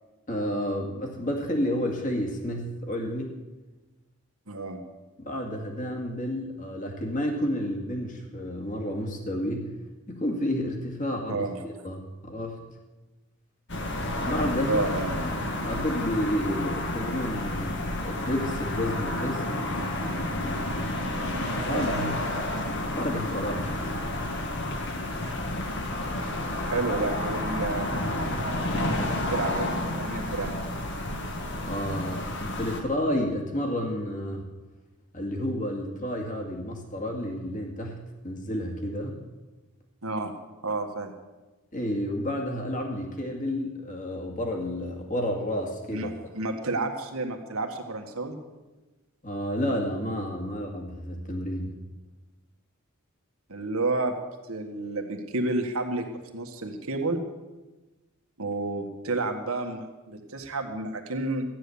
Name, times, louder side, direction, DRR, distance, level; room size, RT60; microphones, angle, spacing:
voice 1, 0.3-3.4 5.2-9.7 10.1-12.6 14.2-14.9 15.6-19.7 21.6-22.5 22.9-23.8 31.6-34.4 35.1-38.0 38.2-39.2 41.7-46.1 49.2-51.8, equal, 35° left, 2 dB, 2.2 m, -30 dB
voice 2, 4.5-4.8 11.3-11.9 14.6-15.3 21.7-22.1 26.7-28.3 29.3-30.6 40.0-40.3 40.6-41.1 45.9-48.4 53.5-54.1 54.5-56.1 56.3-57.2 58.4-61.5, right 2 dB, 80° right, 4 dB, 1.8 m, -30 dB
sound 1, 13.7-32.8, left 1 dB, 55° left, 1.7 m, -30 dB
14.5 x 10.0 x 7.1 m, 1.2 s
head